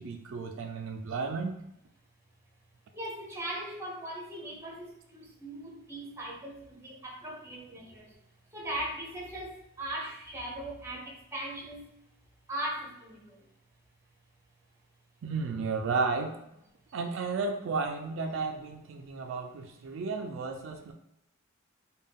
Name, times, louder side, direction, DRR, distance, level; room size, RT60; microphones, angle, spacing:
voice 1, 0.0-1.6 15.2-16.3 16.9-20.9, right 4 dB, 65° right, 5 dB, 0.3 m, -33 dB
voice 2, 2.9-8.0 8.5-11.8 12.5-13.2, right 1 dB, 10° right, -2 dB, 0.6 m, -39 dB
3.5 x 2.2 x 3.5 m, 0.84 s
head